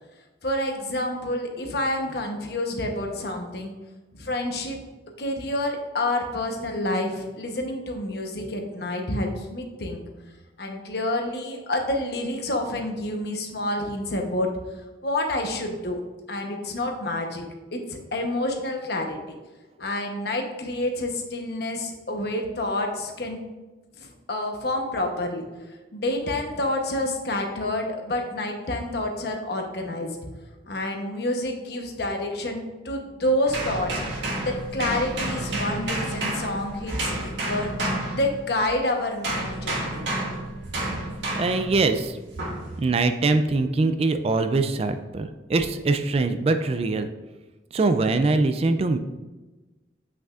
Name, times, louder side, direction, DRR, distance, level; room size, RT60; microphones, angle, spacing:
voice 1, 0.4-3.7 4.1-4.8 5.2-10.0 10.6-14.5 15.0-16.0 16.3-17.4 17.7-19.2 19.8-23.4 24.0-25.4 25.7-30.2 30.7-37.7 38.1-40.0, left 1 dB, 65° left, 3 dB, 1.0 m, -28 dB
sound 1, 33.5-38.7 39.2-41.7 42.4-42.7, right 1 dB, 85° right, 2.0 m, -30 dB
voice 2, 41.4-42.2 42.8-47.1 47.7-49.0, right 3 dB, 35° right, 9 dB, 0.3 m, -23 dB
7.8 x 6.0 x 2.5 m, 1.2 s
head